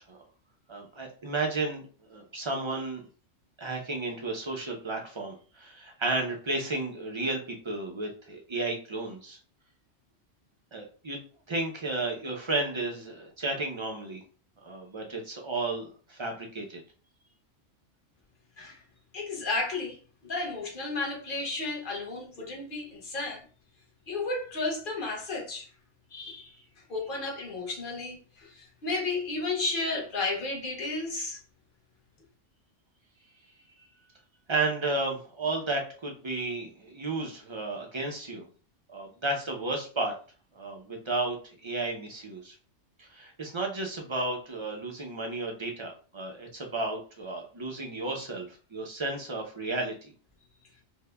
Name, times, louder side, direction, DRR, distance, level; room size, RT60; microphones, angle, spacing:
voice 1, 0.7-3.0 3.6-9.4 10.7-11.2 11.5-14.2 14.6-16.8 34.5-38.5 38.9-40.1 40.5-42.5 43.0-50.1, right 2 dB, 35° right, 0.5 m, -33 dB
voice 2, 19.1-20.0 20.2-23.5 24.1-25.7 26.1-26.5 26.9-31.4, left 3 dB, 45° left, 1.2 m, -33 dB
5.2 x 2.1 x 2.2 m
omnidirectional pair, 1.2 m